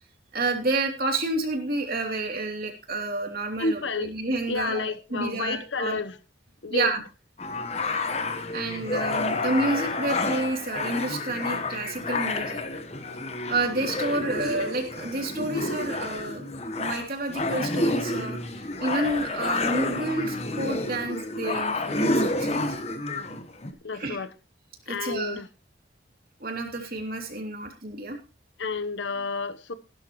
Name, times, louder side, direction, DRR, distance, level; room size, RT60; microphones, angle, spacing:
voice 1, 0.3-6.0 6.7-7.0 8.5-12.6 13.5-16.5 16.8-22.8 23.9-24.2 24.9-25.4 26.4-28.2, right 2 dB, 50° right, 3.0 m, -29 dB
voice 2, 3.6-4.1 4.5-6.2 6.6-6.9 23.8-24.3 24.9-25.5 28.6-29.7, left 3 dB, 75° left, 1.0 m, -30 dB
sound 1, 7.4-23.7, left 2 dB, 35° left, 1.2 m, -29 dB
16.0 x 12.5 x 3.1 m
head